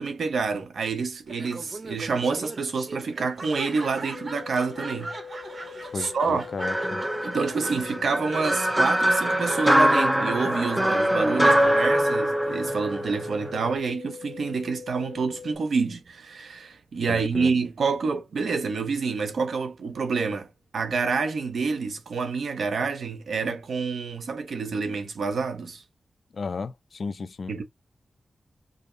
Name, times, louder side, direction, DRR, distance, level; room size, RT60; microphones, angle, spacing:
voice 1, 0.0-5.1 5.4-6.5 7.2-25.8 27.5-27.6, right 4 dB, 85° right, 0.8 m, -28 dB
Laughter, 1.3-11.7, right 2 dB, 40° right, 0.9 m, -41 dB
sound 1, 4.1-15.6, left 6 dB, 35° left, 1.1 m, -42 dB
voice 2, 5.9-7.0 17.1-17.5 26.3-27.5, left 4 dB, 55° left, 0.4 m, -34 dB
sound 2, 6.6-13.7, right 1 dB, 10° right, 0.4 m, -23 dB
5.0 x 2.1 x 2.5 m
wide cardioid pair, 150°, 0 cm